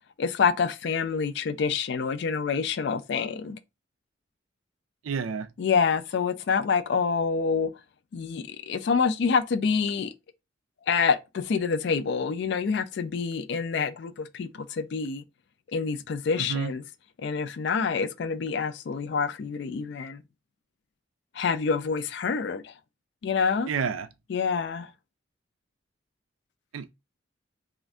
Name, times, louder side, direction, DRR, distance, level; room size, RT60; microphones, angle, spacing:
voice 1, 0.2-3.6 5.6-7.7 8.1-10.1 10.9-15.2 15.7-16.8 17.2-20.2 21.3-22.7 23.2-23.7 24.3-24.9, left 5 dB, 60° left, 0.3 m, -27 dB
voice 2, 5.0-5.5 16.5-16.7 23.7-24.1 26.7-26.9, right 6 dB, 90° right, 0.4 m, -29 dB
2.5 x 2.5 x 3.2 m
head